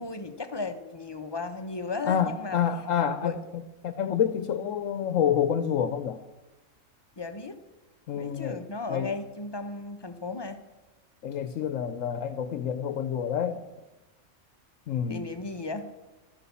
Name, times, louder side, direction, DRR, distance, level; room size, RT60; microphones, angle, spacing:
voice 1, 0.0-2.6 3.2-3.4 7.2-7.6 8.1-10.6 15.1-15.9, left 3 dB, 20° left, 7 dB, 0.9 m, -35 dB
voice 2, 2.0-6.2 8.1-8.6 8.9-9.1 11.2-13.6 14.9-15.2, left 8 dB, 85° left, 11 dB, 1.1 m, -28 dB
12.5 x 12.0 x 7.0 m, 1.1 s
omnidirectional pair, 1.3 m